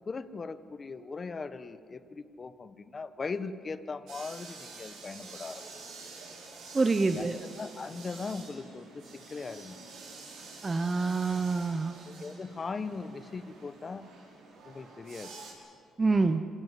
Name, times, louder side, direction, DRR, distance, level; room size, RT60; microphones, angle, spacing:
voice 1, 0.1-5.6 7.1-7.3 7.6-9.8 12.1-14.0 14.6-15.4, left 4 dB, 35° left, 12 dB, 1.2 m, -39 dB
sound 1, 4.1-15.5, right 4 dB, 90° right, 5.7 m, -48 dB
voice 2, 6.7-7.4 10.6-11.9 16.0-16.4, right 3 dB, 25° right, 8 dB, 0.9 m, -26 dB
27.0 x 17.5 x 8.2 m, 2.3 s
cardioid pair, 90°, 0 cm